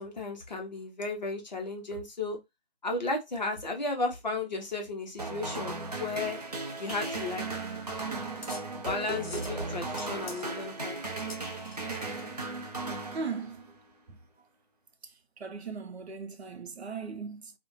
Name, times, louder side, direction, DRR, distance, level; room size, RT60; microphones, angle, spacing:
voice 1, 0.0-2.4 2.8-6.4 6.8-7.4 8.9-11.0, left 3 dB, 45° left, 0.7 m, -34 dB
sound 1, 5.2-13.8, right 3 dB, 40° right, 0.5 m, -36 dB
sound 2, 8.4-12.2, left 3 dB, 65° left, 1.0 m, -48 dB
voice 2, 13.1-13.7 14.1-14.2 15.4-17.5, right 5 dB, 85° right, 0.7 m, -38 dB
2.4 x 2.1 x 3.0 m
figure-of-eight pair, 165°, 31 cm